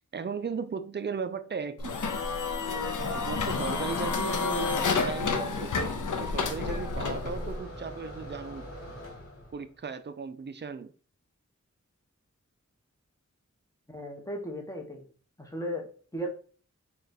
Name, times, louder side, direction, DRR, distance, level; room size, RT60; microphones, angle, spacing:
voice 1, 0.1-2.0 3.1-5.8 6.2-8.7 9.5-10.9, right 5 dB, 35° right, 0.4 m, -36 dB
sound 1, 1.8-7.6, left 4 dB, 85° left, 0.5 m, -30 dB
sound 2, 5.6-9.8, equal, 50° left, 1.1 m, -44 dB
voice 2, 13.9-15.1 15.4-15.9 16.1-16.3, equal, 10° left, 0.9 m, -36 dB
3.9 x 2.3 x 4.0 m
wide cardioid pair, 50°, 30 cm